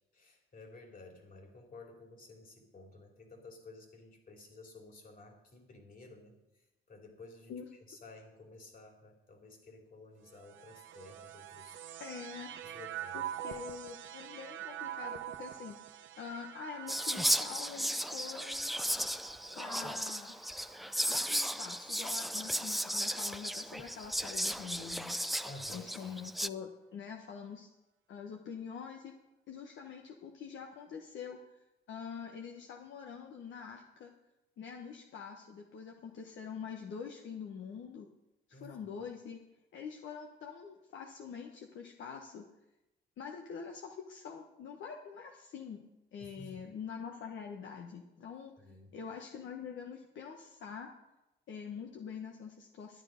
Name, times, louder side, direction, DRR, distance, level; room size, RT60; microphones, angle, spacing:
voice 1, 0.1-6.4 6.9-7.6 7.9-11.8 12.6-13.2 25.4-26.1 38.5-39.1 46.2-46.7 48.6-48.9, left 2 dB, 45° left, 2 dB, 3.1 m, -53 dB
sound 1, 10.3-21.8 22.5-23.3, right 11 dB, 75° right, 0.9 m, -46 dB
voice 2, 12.0-12.5 13.1-18.7 19.5-20.3 21.1-25.2 25.7-27.7 28.1-29.1 29.5-31.4 31.9-34.1 34.6-38.1 38.5-39.4 39.7-42.4 43.2-45.9 46.1-48.6 48.9-50.9 51.5-53.0, left 6 dB, 70° left, 2 dB, 1.2 m, -45 dB
Whispering, 16.9-26.5, equal, ahead, 0.4 m, -35 dB
12.0 x 10.0 x 5.1 m, 0.95 s
cardioid pair, 90°, 20 cm